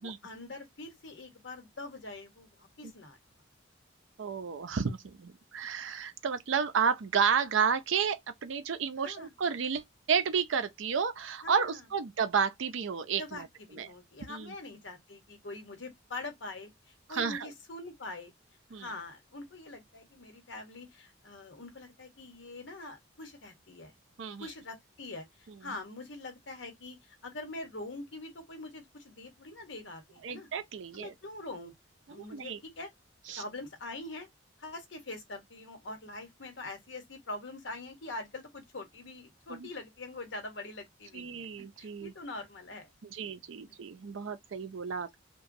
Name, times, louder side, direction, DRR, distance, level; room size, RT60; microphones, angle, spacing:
voice 1, 0.0-3.2 9.0-9.3 11.4-11.8 13.2-18.3 18.7-23.9 24.4-30.5 31.0-31.7 32.1-32.9 33.4-34.3 34.6-42.9 43.2-43.3, left 2 dB, 65° left, 1.0 m, -44 dB
voice 2, 4.2-13.5 13.7-13.9 14.3-14.5 17.1-17.5 18.7-18.9 24.2-24.5 30.2-31.1 32.2-32.6 33.3-33.4 39.6-39.7 41.1-42.1 43.0-45.2, right 6 dB, 75° right, 0.5 m, -31 dB
2.9 x 2.2 x 2.5 m
head